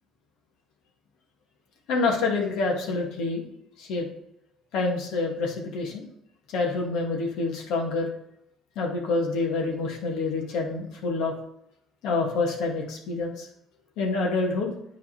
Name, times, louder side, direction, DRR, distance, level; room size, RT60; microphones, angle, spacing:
voice 1, 1.9-3.4 3.8-4.1 4.7-6.1 6.5-8.1 8.8-11.3 12.0-13.5 14.0-14.7, left 3 dB, 75° left, 0 dB, 2.0 m, -27 dB
9.6 x 4.2 x 4.6 m, 0.78 s
supercardioid pair, 90°, 0 cm